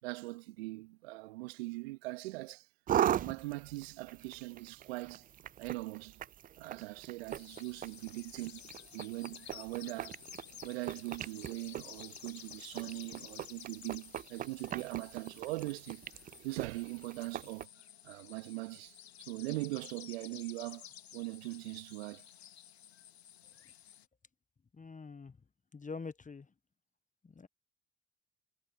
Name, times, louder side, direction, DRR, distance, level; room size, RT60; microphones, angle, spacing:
voice 1, 0.0-2.7 3.1-5.3 5.6-6.2 6.6-8.6 8.9-10.2 10.6-16.0 16.4-17.7 18.0-20.9 21.1-22.2, right 22 dB, 75° right, 2.4 m, -41 dB
sound 1, 2.9-17.6, right 10 dB, 30° right, 0.4 m, -40 dB
sound 2, 7.3-24.1, left 10 dB, 85° left, 2.3 m, -53 dB
voice 2, 24.7-25.4 25.7-26.5 27.2-27.5, left 4 dB, 25° left, 1.5 m, -45 dB
hypercardioid pair, 50°, 31 cm